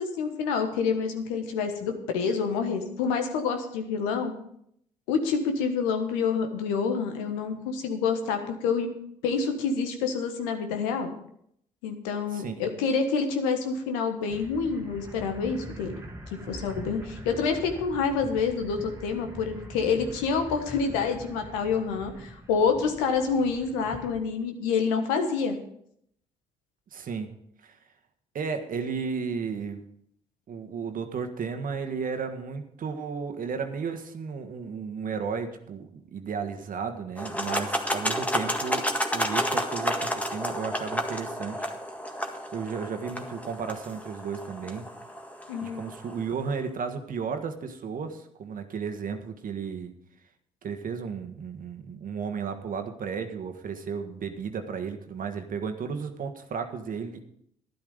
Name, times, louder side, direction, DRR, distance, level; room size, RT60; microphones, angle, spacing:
voice 1, 0.0-4.3 5.1-8.9 9.2-11.1 11.8-16.0 16.5-25.6 45.5-45.8, left 5 dB, 80° left, 6 dB, 1.4 m, -27 dB
sound 1, 14.3-24.2, right 1 dB, 15° right, 1.7 m, -43 dB
voice 2, 26.9-27.4 27.6-27.8 28.3-29.8 30.5-38.9 39.1-41.7 42.5-44.9 45.6-49.9 50.6-57.2, right 6 dB, 55° right, 6 dB, 1.5 m, -34 dB
sound 2, 37.2-46.2, equal, 10° left, 1.7 m, -31 dB
12.0 x 10.5 x 5.1 m, 0.70 s
hypercardioid pair, 45°, 17 cm